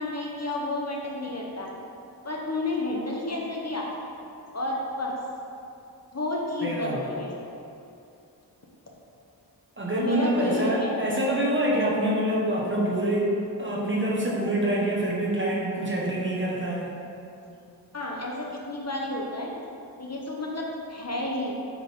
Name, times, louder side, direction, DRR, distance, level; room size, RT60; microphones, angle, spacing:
voice 1, 0.0-1.7 2.2-3.9 4.5-5.1 6.1-7.3 9.9-11.0 17.9-19.5 20.0-21.5, left 2 dB, 40° left, -2 dB, 0.9 m, -31 dB
voice 2, 6.6-7.1 9.8-13.3 13.6-16.9, right 1 dB, 30° right, -5 dB, 1.4 m, -26 dB
8.4 x 4.5 x 3.7 m, 2.6 s
wide cardioid pair, 80°, 41 cm